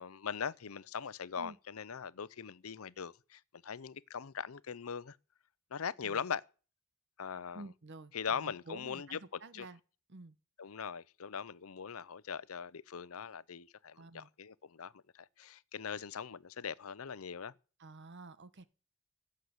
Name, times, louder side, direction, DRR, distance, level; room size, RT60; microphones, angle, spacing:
voice 1, 0.0-5.2 5.7-6.5 7.2-7.6 8.1-9.7 10.6-17.5, left 7 dB, 85° left, 0.6 m, -41 dB
voice 2, 7.5-9.8 10.1-10.4 14.0-14.3 17.8-18.7, right 2 dB, 55° right, 1.0 m, -50 dB
16.0 x 6.6 x 8.0 m
head